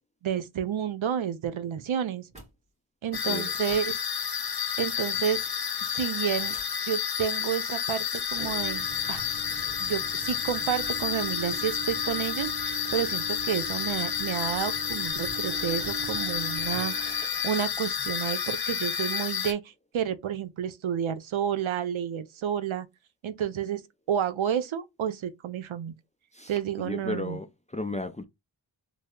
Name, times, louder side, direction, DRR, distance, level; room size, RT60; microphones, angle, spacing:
voice 1, 0.2-2.3 3.0-4.0 4.8-5.5 5.8-6.5 6.9-9.2 9.8-19.6 19.9-22.9 23.2-23.8 24.1-25.9 26.5-27.4, right 9 dB, 75° right, 0.6 m, -30 dB
sound 1, 2.3-2.5 3.5-3.9 4.8-5.5 5.9-6.7 8.3-19.3, right 5 dB, 15° right, 1.4 m, -42 dB
sound 2, 3.1-19.5, left 8 dB, 50° left, 0.7 m, -30 dB
voice 2, 26.8-28.2, left 2 dB, 15° left, 0.3 m, -34 dB
3.1 x 2.0 x 3.6 m
wide cardioid pair, 50°, 48 cm